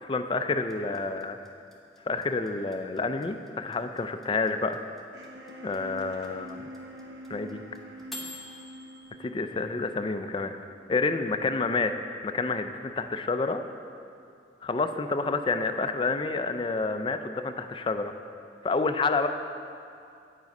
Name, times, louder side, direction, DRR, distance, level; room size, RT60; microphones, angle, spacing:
voice 1, 0.1-1.4 2.1-4.8 5.6-6.6 7.3-7.6 9.2-10.5 10.9-11.9 12.2-13.6 14.6-18.1 18.6-19.3, left 3 dB, 30° left, 7 dB, 0.4 m, -29 dB
sound 1, 0.7-9.0, left 2 dB, ahead, 0.9 m, -44 dB
sound 2, 5.1-11.0, right 1 dB, 75° right, 0.9 m, -46 dB
9.3 x 7.4 x 5.3 m, 2.5 s
head